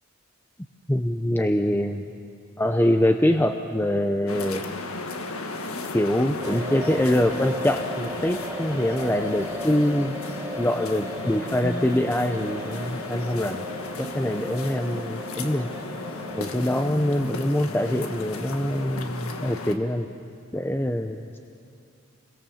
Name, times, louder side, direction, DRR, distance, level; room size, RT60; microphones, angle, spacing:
voice 1, 0.9-2.0 2.6-4.6 5.9-10.2 10.6-13.7 14.0-15.7 16.3-20.1 20.5-21.4, left 1 dB, 10° left, 6 dB, 0.6 m, -24 dB
sound 1, 4.3-19.8, left 2 dB, 90° left, 1.7 m, -35 dB
sound 2, 6.4-16.6, equal, 10° right, 1.3 m, -37 dB
sound 3, 11.6-12.2 15.0-18.5, right 1 dB, 35° right, 1.7 m, -42 dB
28.5 x 23.0 x 7.1 m, 2.4 s
head